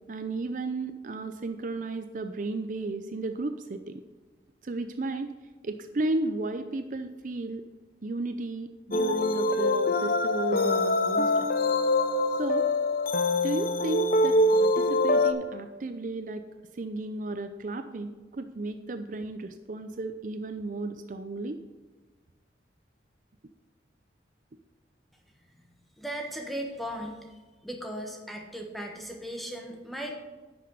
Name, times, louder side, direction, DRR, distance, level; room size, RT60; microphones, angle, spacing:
voice 1, 0.1-4.0 4.6-5.3 5.6-7.6 8.0-11.5 12.4-12.7 13.4-16.4 16.7-21.6, right 2 dB, 45° right, 8 dB, 0.5 m, -34 dB
sound 1, 8.9-15.3, left 2 dB, 50° left, 0.7 m, -24 dB
voice 2, 26.0-27.3 27.6-30.1, equal, ahead, 1 dB, 1.3 m, -37 dB
10.5 x 6.6 x 5.4 m, 1.3 s
head